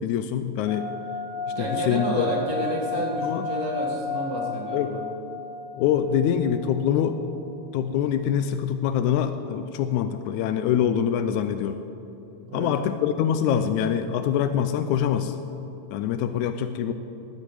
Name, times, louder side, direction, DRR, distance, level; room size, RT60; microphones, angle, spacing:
voice 1, 0.0-0.9 1.6-2.3 3.2-3.4 4.7-5.0 5.8-7.2 7.7-11.8 12.5-15.4 15.9-16.9, left 9 dB, 85° left, 9 dB, 1.7 m, -24 dB
Nepal Singing Bowl, 0.6-7.3, left 5 dB, 55° right, 3.3 m, -33 dB
voice 2, 1.5-5.0 10.2-10.3 12.5-12.7, right 1 dB, 35° right, -2 dB, 1.5 m, -30 dB
20.0 x 9.8 x 4.9 m, 2.9 s
omnidirectional pair, 4.0 m